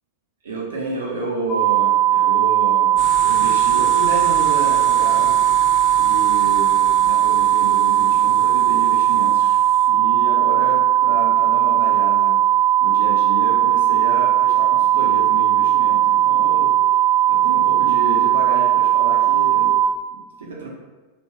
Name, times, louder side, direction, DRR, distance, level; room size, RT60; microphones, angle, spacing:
voice 1, 0.4-5.4 6.0-9.6 9.9-12.4 12.8-16.7 17.3-19.7 20.1-20.7, right 3 dB, 65° right, -2 dB, 0.5 m, -30 dB
sound 1, 1.5-19.9, right 12 dB, 5° right, 0.6 m, -17 dB
sound 2, 3.0-9.9, left 2 dB, 25° left, 0.8 m, -36 dB
3.2 x 2.2 x 3.4 m, 1.2 s
figure-of-eight pair, 90°, 0 cm